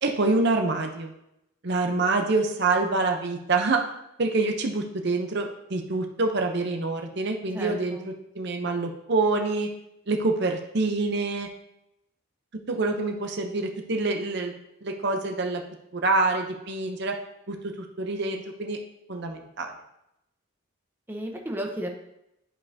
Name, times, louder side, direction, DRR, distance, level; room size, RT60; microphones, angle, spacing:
voice 1, 0.0-1.1 1.6-3.9 4.2-9.7 10.1-11.5 12.7-14.5 14.8-15.6 15.9-17.2 17.5-18.8 19.1-19.7, right 3 dB, 50° right, 4 dB, 0.7 m, -26 dB
voice 2, 7.5-8.1 21.1-21.9, right 1 dB, 10° right, 0 dB, 0.8 m, -33 dB
11.0 x 5.4 x 2.7 m, 0.83 s
head